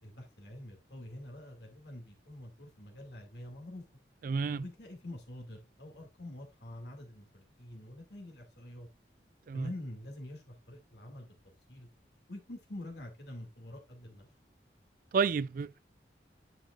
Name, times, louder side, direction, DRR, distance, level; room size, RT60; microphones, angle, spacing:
voice 1, 0.0-3.8 4.5-8.9 9.5-11.3 11.7-11.9 12.3-14.3, left 1 dB, 65° left, 2.4 m, -46 dB
voice 2, 4.2-4.6 9.5-9.7 15.1-15.8, right 5 dB, 50° right, 0.3 m, -30 dB
9.9 x 5.6 x 2.5 m
head